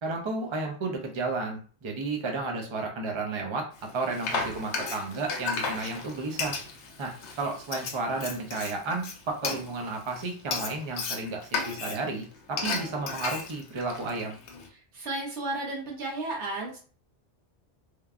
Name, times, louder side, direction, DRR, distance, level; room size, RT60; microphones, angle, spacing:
voice 1, 0.0-3.7 3.9-6.6 7.0-14.4, right 3 dB, 40° right, 1 dB, 0.5 m, -32 dB
Frying (food), 3.8-14.7, left 4 dB, 85° left, 0.9 m, -34 dB
voice 2, 14.7-16.8, right 2 dB, 90° right, -2 dB, 1.2 m, -33 dB
3.2 x 2.2 x 2.4 m, 0.39 s
omnidirectional pair, 1.1 m